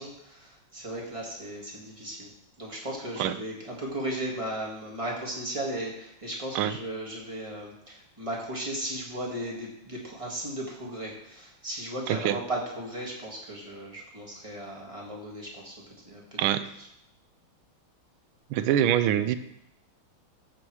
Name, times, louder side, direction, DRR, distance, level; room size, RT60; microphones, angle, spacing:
voice 1, 0.0-2.3 2.6-15.7 16.0-16.4, right 1 dB, 15° right, -2 dB, 1.8 m, -36 dB
voice 2, 12.1-12.4 16.4-16.7 18.5-19.4, right 11 dB, 80° right, 12 dB, 1.4 m, -24 dB
14.0 x 4.6 x 4.7 m, 0.80 s
omnidirectional pair, 2.3 m